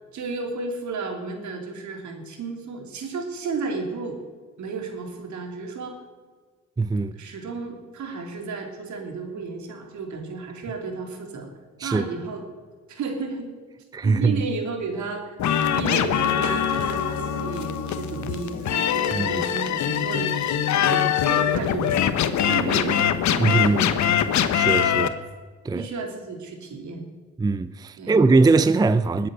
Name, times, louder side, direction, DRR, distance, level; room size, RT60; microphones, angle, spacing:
voice 1, 0.1-4.2 4.6-6.0 7.1-11.5 11.8-12.4 12.9-13.6 14.0-15.3 15.7-20.3 20.7-22.0 22.4-24.2 24.8-25.1 25.7-27.0 28.0-28.2, right 4 dB, 70° right, 3.3 m, -33 dB
voice 2, 6.8-7.1 11.8-12.1 13.9-14.4 19.1-19.5 23.4-23.9 24.5-25.1 25.6-25.9 27.4-29.3, right 3 dB, 15° right, 0.5 m, -21 dB
sound 1, 15.4-25.1, left 9 dB, 70° left, 1.1 m, -23 dB
20.5 x 8.6 x 6.6 m
cardioid pair, 90°, 30 cm